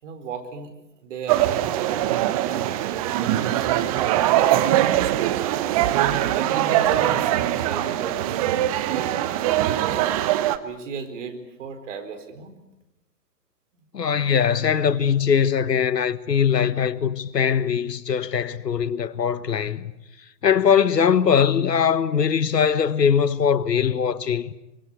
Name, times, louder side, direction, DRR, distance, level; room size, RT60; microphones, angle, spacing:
voice 1, 0.0-0.7 1.0-5.7 6.3-8.4 8.9-10.0 10.6-12.6, right 6 dB, 45° right, 4.5 m, -36 dB
sound 1, 1.3-10.6, right 13 dB, 20° right, 0.9 m, -22 dB
voice 2, 13.9-19.9 20.4-24.5, left 7 dB, 75° left, 1.5 m, -21 dB
24.5 x 24.5 x 8.4 m
figure-of-eight pair, 130°, 50 cm